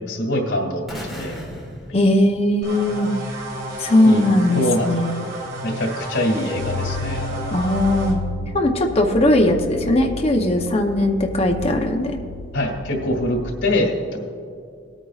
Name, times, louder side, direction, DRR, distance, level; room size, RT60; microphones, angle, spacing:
voice 1, 0.1-1.4 4.0-4.3 4.5-4.9 5.6-7.5 12.5-14.2, left 1 dB, 85° left, 1 dB, 2.2 m, -24 dB
sound 1, 0.9-3.0, equal, ahead, 2.2 m, -36 dB
voice 2, 1.9-3.1 3.8-5.2 7.5-8.2 8.5-12.1, left 1 dB, 35° left, 2 dB, 0.7 m, -19 dB
sound 2, 2.6-8.1, right 1 dB, 85° right, 2.3 m, -32 dB
sound 3, 6.5-13.5, left 2 dB, 70° left, 0.5 m, -32 dB
19.0 x 9.0 x 2.4 m, 2.3 s
head